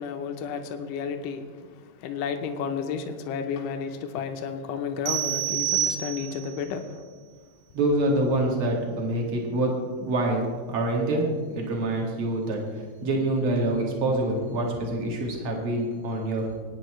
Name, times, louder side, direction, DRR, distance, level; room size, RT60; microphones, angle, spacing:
voice 1, 0.0-7.0, left 6 dB, 85° left, 6 dB, 1.8 m, -32 dB
sound 1, 5.1-6.6, right 11 dB, 70° right, 3.0 m, -27 dB
voice 2, 7.7-9.7 10.0-11.2 11.5-16.5, right 1 dB, 40° right, -1 dB, 2.1 m, -26 dB
19.5 x 9.8 x 3.2 m, 1.5 s
omnidirectional pair, 4.8 m